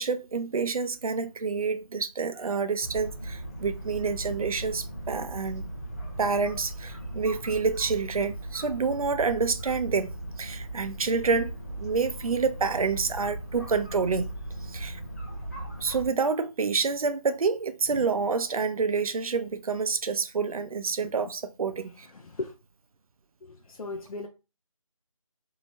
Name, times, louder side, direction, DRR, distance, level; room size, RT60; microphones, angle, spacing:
voice 1, 0.0-5.6 6.2-10.1 10.4-14.3 14.6-15.0 15.8-22.1, right 5 dB, 85° right, 0.4 m, -28 dB
sound 1, 2.8-16.1, right 1 dB, 30° left, 0.7 m, -38 dB
voice 2, 22.1-22.5 23.4-24.3, left 3 dB, 85° left, 0.5 m, -37 dB
2.7 x 2.1 x 2.9 m
figure-of-eight pair, 180°, 18 cm